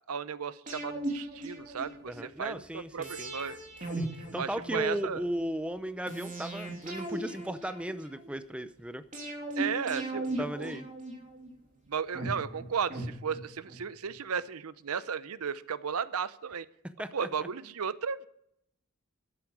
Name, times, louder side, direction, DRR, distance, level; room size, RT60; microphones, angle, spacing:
voice 1, 0.1-3.6 4.3-5.2 9.6-10.8 11.9-16.7 17.1-18.3, right 6 dB, 85° right, 16 dB, 0.6 m, -35 dB
sound 1, 0.7-2.2 3.0-5.1 6.1-8.3 9.1-11.5 12.1-13.8 14.1-14.2, right 1 dB, 35° right, 3.2 m, -38 dB
voice 2, 2.1-3.3 4.0-4.1 4.3-9.0 10.4-10.9 17.0-17.3, right 1 dB, 5° right, 11 dB, 0.6 m, -36 dB
13.0 x 11.0 x 4.8 m, 0.75 s
head